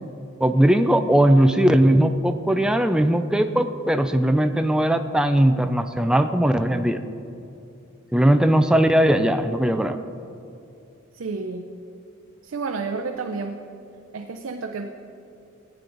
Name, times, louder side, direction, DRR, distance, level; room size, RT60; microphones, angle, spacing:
voice 1, 0.4-7.0 8.1-10.0, right 1 dB, 5° right, 8 dB, 0.3 m, -19 dB
voice 2, 11.1-11.7 12.4-13.6 14.1-14.9, right 4 dB, 65° right, 4 dB, 0.5 m, -30 dB
15.0 x 9.1 x 3.9 m, 2.6 s
head